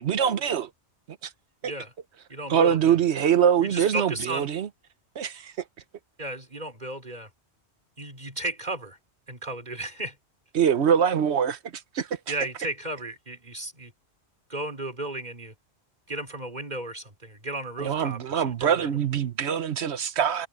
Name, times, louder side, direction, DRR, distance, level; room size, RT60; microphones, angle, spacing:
voice 1, 0.0-0.7 1.2-1.3 2.5-4.7 5.2-5.5 10.5-11.6 11.9-12.1 17.8-20.5, right 8 dB, 80° right, 1.2 m, -23 dB
voice 2, 2.3-3.0 3.6-4.5 6.2-7.3 8.0-9.0 9.3-10.1 12.3-13.9 14.5-15.5 16.1-18.9, right 2 dB, 40° right, 4.6 m, -34 dB
omnidirectional pair, 1.1 m